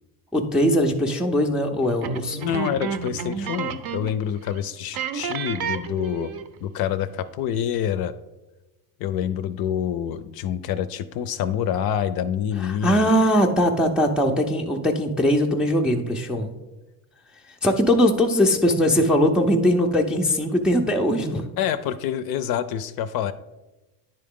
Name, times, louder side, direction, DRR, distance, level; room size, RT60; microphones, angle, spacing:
voice 1, 0.3-2.4 12.6-16.5 17.6-21.4, equal, ahead, 1 dB, 0.4 m, -20 dB
sound 1, 2.0-4.2 4.5-4.6 4.9-6.6, right 6 dB, 50° right, 0.6 m, -31 dB
voice 2, 2.4-6.3 6.6-8.1 9.0-13.1 21.6-23.3, left 9 dB, 50° left, 12 dB, 0.5 m, -27 dB
10.0 x 3.8 x 3.6 m, 1.1 s
supercardioid pair, 110°, 47 cm